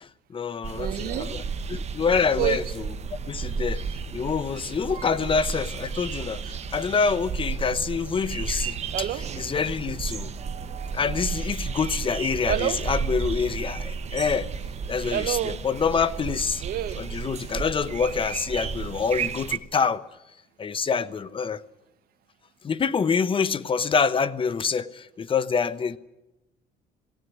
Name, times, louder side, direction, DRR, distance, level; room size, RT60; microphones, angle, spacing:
voice 1, 0.0-1.4 1.7-2.6 3.3-3.8 4.1-8.8 9.4-10.3 10.9-14.5 14.9-16.6 17.0-20.0 20.6-21.6 22.6-26.0, left 5 dB, 30° left, 0.9 m, -26 dB
sound 1, 0.6-19.6, right 5 dB, 40° right, 1.2 m, -33 dB
voice 2, 0.7-1.3 2.4-2.6 8.9-9.2 10.4-11.4 12.5-12.8 15.1-15.6 16.6-17.0, right 12 dB, 65° right, 1.3 m, -29 dB
18.0 x 17.0 x 9.5 m
cardioid pair, 110°, 17 cm